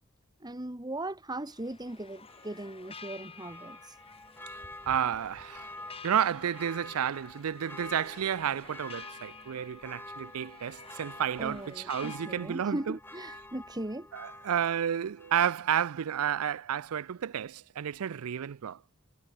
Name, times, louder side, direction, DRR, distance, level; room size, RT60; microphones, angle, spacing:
voice 1, 0.4-3.9 11.4-14.1, right 1 dB, 20° right, 1.8 m, -38 dB
sound 1, 1.5-12.2, left 5 dB, 25° left, 6.8 m, -51 dB
Church bell, 2.3-15.9 16.3-16.4, left 2 dB, 10° left, 2.7 m, -48 dB
voice 2, 4.8-5.7 6.0-13.0 14.1-18.8, right 9 dB, 80° right, 0.4 m, -31 dB
head